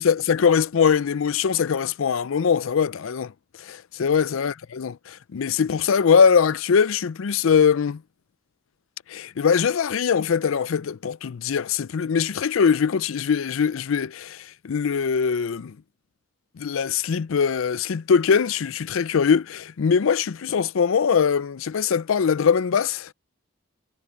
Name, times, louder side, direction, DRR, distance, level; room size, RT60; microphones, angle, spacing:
voice 1, 0.0-3.3 3.6-8.0 9.1-15.8 16.6-23.1, left 6 dB, 80° left, 0.4 m, -22 dB
head